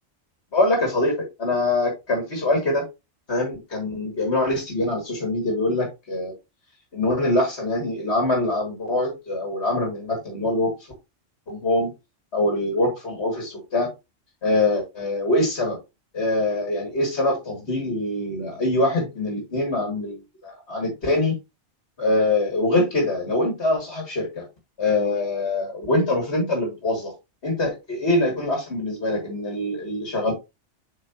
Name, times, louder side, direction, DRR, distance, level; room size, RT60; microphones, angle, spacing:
voice 1, 0.5-2.9 3.3-6.3 6.9-10.7 11.5-11.9 12.3-13.9 14.4-15.8 16.1-21.4 22.0-24.4 24.8-27.1 27.4-30.3, left 2 dB, 60° left, 1 dB, 2.5 m, -24 dB
7.6 x 5.2 x 2.9 m, 0.24 s
omnidirectional pair, 1.2 m